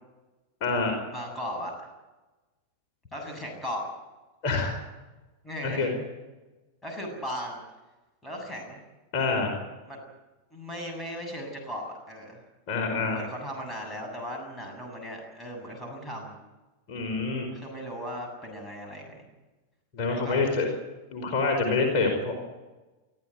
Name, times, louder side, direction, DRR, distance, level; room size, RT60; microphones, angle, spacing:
voice 1, 0.6-1.0 4.4-4.8 5.6-6.0 9.1-9.5 12.7-13.2 16.9-17.5 19.9-20.7 21.1-22.3, left 3 dB, 40° left, 2 dB, 5.1 m, -26 dB
voice 2, 1.1-1.9 3.1-3.8 5.4-5.9 6.8-7.6 8.2-8.8 9.8-10.0 10.5-12.4 13.1-16.3 17.5-19.3 20.1-20.4, equal, 10° left, 1 dB, 7.8 m, -37 dB
24.0 x 14.5 x 9.3 m, 1.1 s
figure-of-eight pair, 90°, 0 cm